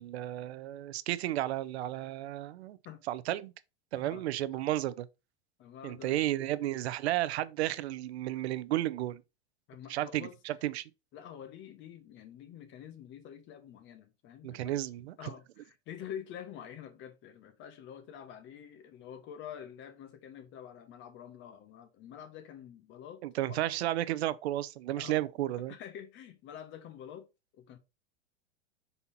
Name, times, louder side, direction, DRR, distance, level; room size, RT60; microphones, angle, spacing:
voice 1, 0.0-2.8 3.1-3.5 3.9-5.1 5.8-9.2 9.9-10.8 14.4-15.3 23.2-25.7, right 14 dB, 80° right, 0.7 m, -33 dB
voice 2, 5.6-6.2 9.7-10.4 11.1-14.9 15.2-23.6 25.0-25.2 25.7-27.3 27.5-27.8, left 9 dB, 35° left, 1.2 m, -47 dB
5.6 x 4.2 x 4.1 m
supercardioid pair, 135°, 32 cm